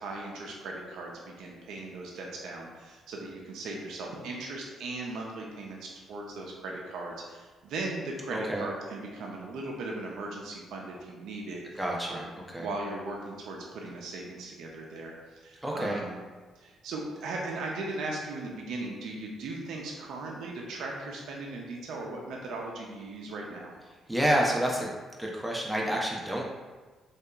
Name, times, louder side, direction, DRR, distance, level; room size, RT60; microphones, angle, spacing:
voice 1, 0.0-12.3 12.6-16.1 16.6-23.7, right 2 dB, 80° right, -1 dB, 0.4 m, -38 dB
voice 2, 8.3-8.7 11.8-12.7 15.6-16.0 24.1-24.9 25.2-26.5, equal, 5° right, -3 dB, 0.4 m, -29 dB
2.7 x 2.3 x 2.2 m, 1.3 s
cardioid pair, 90°, 0 cm